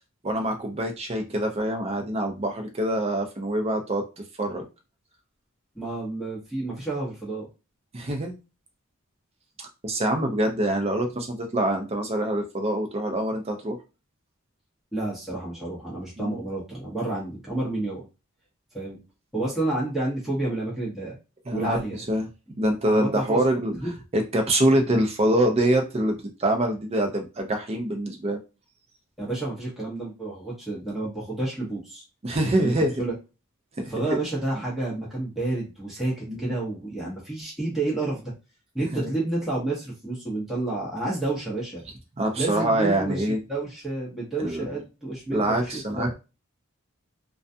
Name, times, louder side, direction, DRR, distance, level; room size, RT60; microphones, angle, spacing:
voice 1, 0.2-4.0 4.4-4.6 7.9-8.3 9.8-13.8 16.2-16.4 21.5-21.8 22.1-22.3 22.6-23.7 24.1-28.4 32.2-32.9 33.8-34.2 36.3-36.5 38.9-39.1 42.2-43.4 44.4-44.7 45.3-46.1, right 1 dB, 30° right, 4 dB, 0.5 m, -25 dB
voice 2, 5.7-7.5 14.9-18.0 18.7-19.0 19.3-21.2 21.5-22.0 22.9-23.4 23.7-23.9 29.2-32.0 32.6-33.1 33.9-38.3 38.7-41.8 42.4-46.1, right 2 dB, ahead, -6 dB, 0.9 m, -30 dB
2.3 x 2.3 x 2.6 m, 0.30 s
head